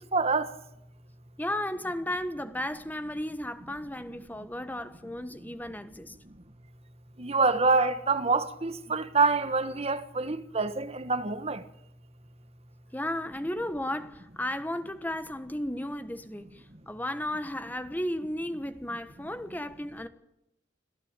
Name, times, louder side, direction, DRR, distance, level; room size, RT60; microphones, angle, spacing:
voice 1, 0.1-0.5 7.2-11.6, right 4 dB, 35° right, 1.4 m, -26 dB
voice 2, 1.4-6.1 12.9-20.1, left 1 dB, 10° left, 1.4 m, -34 dB
26.5 x 15.5 x 9.0 m
head